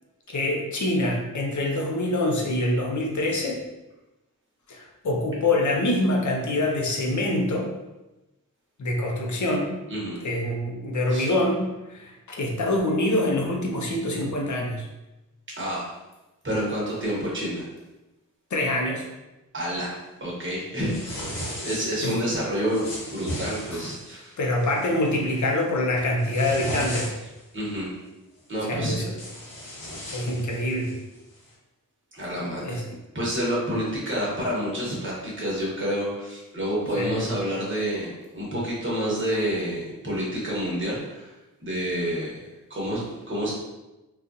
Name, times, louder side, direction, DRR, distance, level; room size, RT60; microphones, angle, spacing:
voice 1, 0.3-3.6 4.7-7.7 8.8-9.7 10.2-11.6 11.9-14.9 18.5-19.0 22.0-22.2 23.7-23.9 24.4-27.1 28.7-29.1 30.1-30.9 32.6-32.8 36.9-37.3, left 1 dB, 55° left, 0 dB, 0.7 m, -25 dB
voice 2, 9.9-10.2 11.1-11.3 15.6-15.9 16.4-17.7 19.5-22.8 23.1-24.4 27.5-27.9 28.5-29.1 32.1-32.8 33.1-41.3 41.6-42.4 42.7-43.5, equal, 35° right, -5 dB, 1.1 m, -28 dB
sound 1, 20.8-22.1 22.7-24.1 24.6-24.9 25.3-25.6 26.0-27.4 28.6-28.7 29.0-31.0, equal, 80° left, 1.0 m, -36 dB
3.8 x 2.4 x 2.7 m, 1.0 s
wide cardioid pair, 125°, 35 cm